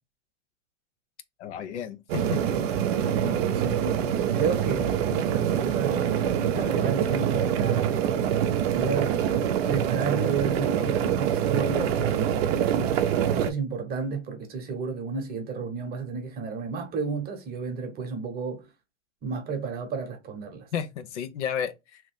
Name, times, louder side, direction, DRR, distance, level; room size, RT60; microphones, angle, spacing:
voice 1, 1.4-2.6 20.7-22.0, left 7 dB, 65° left, 0.7 m, -32 dB
sound 1, 2.1-13.5, right 9 dB, 55° right, 0.6 m, -25 dB
voice 2, 3.1-6.2 6.5-13.0 13.3-18.7 19.2-20.7, right 5 dB, 25° right, 0.9 m, -32 dB
2.9 x 2.5 x 3.2 m
hypercardioid pair, 115°, 37 cm